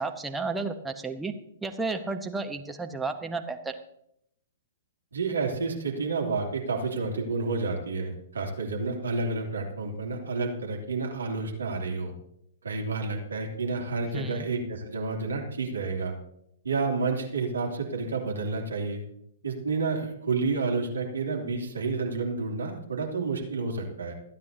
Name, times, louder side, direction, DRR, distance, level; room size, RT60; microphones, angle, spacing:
voice 1, 0.0-1.3 1.6-3.8 14.1-14.5, right 3 dB, 5° right, 5 dB, 0.9 m, -32 dB
voice 2, 5.1-12.1 12.6-16.1 16.6-19.0 19.4-24.1, right 4 dB, 70° right, 1 dB, 2.9 m, -30 dB
28.0 x 9.5 x 2.8 m, 0.74 s
figure-of-eight pair, 110°, 0 cm